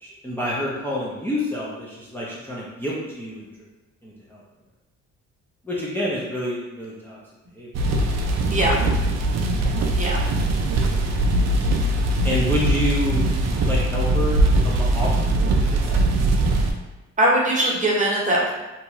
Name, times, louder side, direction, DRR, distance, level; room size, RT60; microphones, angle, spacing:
voice 1, 0.0-3.4 4.0-4.4 5.6-7.2 7.6-7.7 12.2-13.3 13.7-16.0, equal, 5° left, -7 dB, 0.5 m, -28 dB
sound 1, 7.7-16.7, right 1 dB, 60° right, 0.4 m, -21 dB
voice 2, 17.2-18.5, right 1 dB, 25° right, -4 dB, 0.8 m, -20 dB
2.7 x 2.3 x 3.0 m, 1.1 s
cardioid pair, 90°, 30 cm